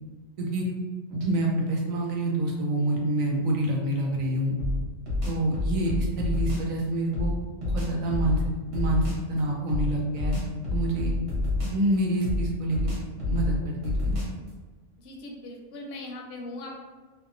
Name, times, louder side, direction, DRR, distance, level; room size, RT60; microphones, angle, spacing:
voice 1, 1.1-4.5 5.3-7.3 7.6-8.4 8.7-10.3 10.7-11.1 11.7-12.9 13.3-14.1, right 1 dB, 85° right, -1 dB, 1.0 m, -27 dB
sound 1, 4.6-6.7 7.1-9.3 9.7-11.9 12.2-14.5, left 2 dB, 60° right, 1.1 m, -28 dB
voice 2, 15.0-16.7, left 2 dB, 65° left, -1 dB, 0.7 m, -39 dB
2.8 x 2.0 x 2.4 m, 1.4 s
omnidirectional pair, 1.4 m